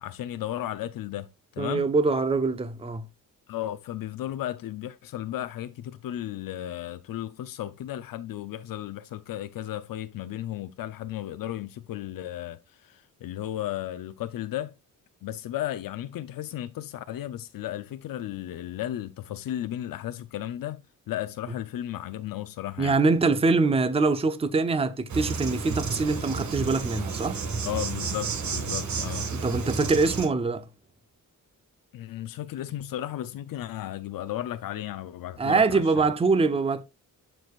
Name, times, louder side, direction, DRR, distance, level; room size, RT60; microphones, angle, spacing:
voice 1, 0.0-1.9 3.5-14.7 15.2-23.0 27.6-29.3 30.0-30.1 31.9-36.1, left 12 dB, 90° left, 0.6 m, -34 dB
voice 2, 1.6-3.1 22.8-27.4 29.4-30.6 35.4-36.8, right 3 dB, 15° right, 0.6 m, -24 dB
Insect, 25.1-30.3, right 5 dB, 60° right, 1.6 m, -31 dB
11.5 x 4.8 x 2.4 m
wide cardioid pair, 155°, 33 cm